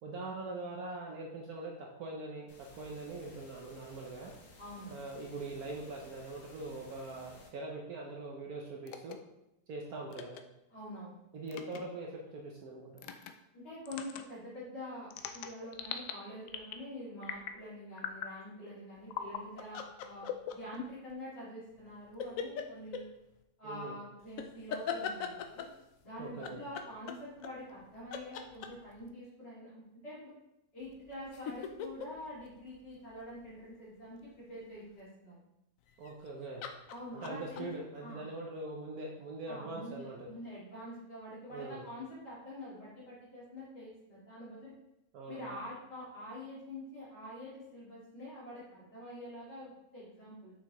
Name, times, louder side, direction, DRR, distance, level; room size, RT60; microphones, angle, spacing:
voice 1, 0.0-4.3 4.9-9.2 9.7-10.4 11.3-13.1 23.6-24.0 26.2-26.6 36.0-36.7 37.1-40.3 41.5-41.9 45.1-45.6, right 2 dB, 65° right, -1 dB, 1.2 m, -42 dB
sound 1, 2.5-7.5, left 2 dB, 50° left, 1.6 m, -57 dB
voice 2, 4.6-4.9 10.7-11.2 13.5-23.0 23.6-25.7 26.0-30.3 30.7-35.4 36.9-37.7 38.0-38.2 39.4-44.7 45.3-50.5, left 1 dB, 35° left, -12 dB, 2.5 m, -46 dB
sound 2, 8.9-9.1 10.1-10.4 11.5-11.8 13.0-13.3 13.9-14.2 15.1-16.1 16.5-16.9 17.2-17.6 18.0-18.3 19.1-19.4 20.2-21.1, left 8 dB, 80° left, 1.2 m, -41 dB
sound 3, 19.6-20.8 22.2-23.1 24.4-25.8 26.4-27.8 28.1-29.1 30.8-33.5 35.9-36.3 36.6-37.7, left 7 dB, 65° left, 0.9 m, -40 dB
6.5 x 5.8 x 3.1 m, 0.88 s
omnidirectional pair, 1.8 m